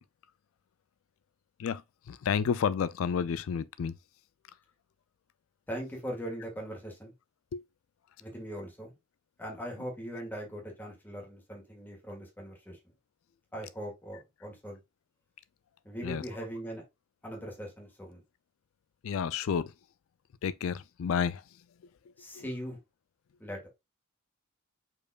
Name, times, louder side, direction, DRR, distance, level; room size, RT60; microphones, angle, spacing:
voice 1, 2.1-3.9 7.5-7.6 16.0-16.2 19.0-19.7 20.4-21.4 22.4-22.5, left 7 dB, 65° left, 0.3 m, -30 dB
voice 2, 5.7-7.1 8.2-8.9 9.4-12.8 13.5-14.8 15.8-16.8 17.2-18.2 22.2-22.8 23.4-23.6, equal, 10° left, 1.5 m, -40 dB
5.0 x 4.4 x 2.3 m
head